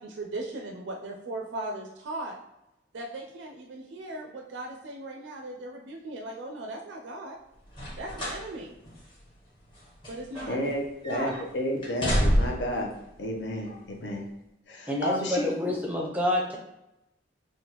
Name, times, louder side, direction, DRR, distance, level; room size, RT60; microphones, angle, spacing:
voice 1, 0.0-2.4 2.9-7.4 8.0-8.7 10.1-10.6 11.1-11.3, right 2 dB, 80° right, 1 dB, 0.4 m, -38 dB
sound 1, 7.7-8.5 8.9-9.0 9.7-10.8 11.0-11.4 11.8-12.8 13.6-13.7, equal, 25° left, 0.9 m, -28 dB
voice 2, 10.5-12.9 13.2-14.3 14.7-15.5, equal, 75° left, 1 dB, 0.6 m, -31 dB
voice 3, 14.9-16.6, left 1 dB, 10° right, -1 dB, 0.5 m, -28 dB
3.4 x 2.2 x 2.9 m, 0.89 s
head